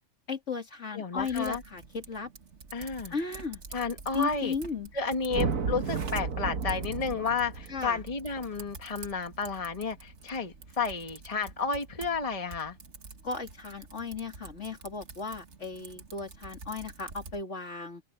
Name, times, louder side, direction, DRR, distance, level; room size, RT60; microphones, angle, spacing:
voice 1, 0.3-2.3 3.1-3.6 4.1-4.9 7.7-8.0 13.2-18.0, left 4 dB, 60° left, 2.9 m, -35 dB
voice 2, 0.9-1.6 2.7-3.1 3.7-4.5 4.9-12.8, left 5 dB, 25° left, 1.6 m, -32 dB
Typing, 1.2-17.4, right 4 dB, 60° right, 2.0 m, -48 dB
sound 1, 5.3-9.7, right 5 dB, 80° right, 1.8 m, -33 dB
open air
omnidirectional pair, 1.4 m